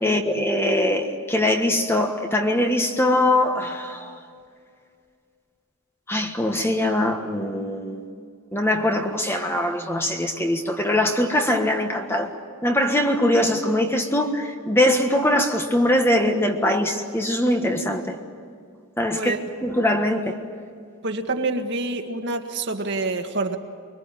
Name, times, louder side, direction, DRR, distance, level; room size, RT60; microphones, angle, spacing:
voice 1, 0.0-4.1 6.1-8.1 8.5-12.3 12.6-18.1 19.0-19.3 19.6-20.3, left 1 dB, 10° left, 4 dB, 1.4 m, -22 dB
voice 2, 21.0-23.6, right 2 dB, 50° right, 4 dB, 1.8 m, -27 dB
24.5 x 23.5 x 9.1 m, 2.3 s
head